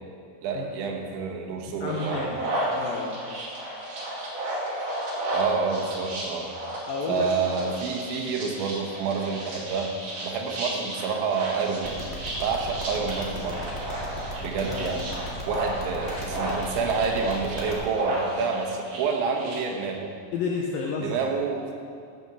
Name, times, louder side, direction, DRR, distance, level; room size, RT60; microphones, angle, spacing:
voice 1, 0.4-2.2 5.3-6.5 7.1-9.9 10.2-12.0 12.4-13.8 14.4-15.0 15.4-20.1 21.0-21.7, right 5 dB, 85° right, 2 dB, 3.6 m, -28 dB
voice 2, 1.8-2.4 2.7-3.2 6.9-7.8 14.5-15.0 20.3-21.2, left 4 dB, 85° left, -1 dB, 2.1 m, -31 dB
sound 1, 1.9-19.5, right 1 dB, 50° right, 3.4 m, -33 dB
sound 2, 11.8-17.7, equal, 45° left, 0.8 m, -36 dB
13.5 x 6.3 x 6.8 m, 2.3 s
omnidirectional pair, 5.2 m